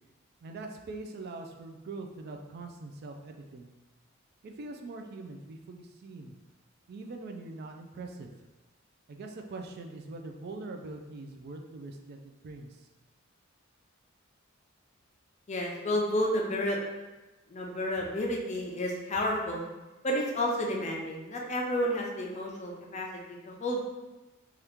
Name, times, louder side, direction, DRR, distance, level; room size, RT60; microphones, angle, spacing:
voice 1, 0.4-3.7 4.4-6.4 6.9-8.3 9.1-12.8, right 3 dB, 55° right, 3 dB, 0.3 m, -43 dB
voice 2, 15.5-16.8 17.5-19.7 20.0-23.8, left 1 dB, 35° left, -1 dB, 0.5 m, -31 dB
2.8 x 2.4 x 3.4 m, 1.1 s
head